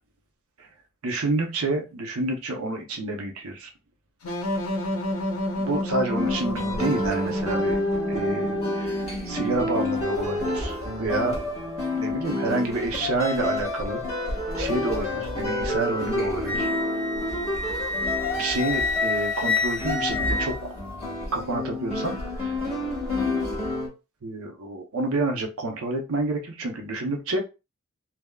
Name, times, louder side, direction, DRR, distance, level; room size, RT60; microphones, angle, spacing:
voice 1, 1.0-3.7 5.6-7.8 8.1-11.4 11.9-14.0 14.6-16.7 18.3-20.6 21.3-22.6 24.2-27.4, right 2 dB, 75° right, 3 dB, 0.6 m, -29 dB
sound 1, 4.2-9.9, left 1 dB, 80° left, 0.8 m, -30 dB
sound 2, 6.2-23.9, left 2 dB, 30° left, 1.1 m, -29 dB
Wind instrument woodwind instrument, 16.4-21.0, left 3 dB, 5° left, 0.6 m, -28 dB
3.4 x 2.0 x 2.2 m, 0.28 s
head